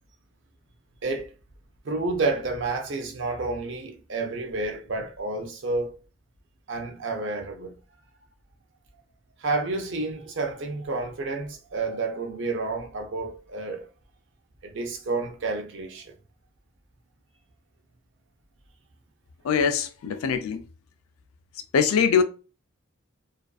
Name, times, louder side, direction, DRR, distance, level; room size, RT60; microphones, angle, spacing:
voice 1, 1.0-1.3 1.8-6.0 6.7-7.8 9.4-13.9 14.6-16.1, right 3 dB, 60° right, 0.5 m, -30 dB
voice 2, 19.4-20.6 21.7-22.2, left 6 dB, 85° left, 0.4 m, -22 dB
2.5 x 2.3 x 2.3 m
head